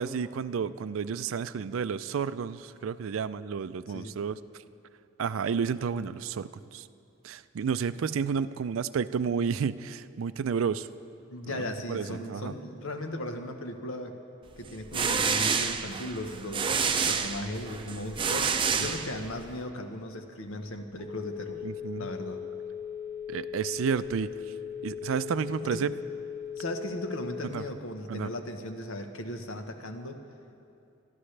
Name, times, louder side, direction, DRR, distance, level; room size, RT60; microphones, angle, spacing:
voice 1, 0.0-4.4 5.2-6.9 7.2-10.9 11.5-12.5 21.6-22.1 23.3-24.3 24.8-25.9 27.5-27.6 28.1-28.3, right 6 dB, 80° right, 15 dB, 0.4 m, -31 dB
voice 2, 11.3-14.2 14.6-21.6 22.0-22.4 25.7-25.9 26.6-30.2, left 1 dB, 85° left, 6 dB, 1.1 m, -37 dB
sound 1, 14.7-19.5, right 6 dB, 25° right, 0.5 m, -28 dB
Telephone, 20.8-27.8, left 8 dB, 55° left, 2.1 m, -39 dB
23.0 x 13.0 x 3.3 m, 2.6 s
head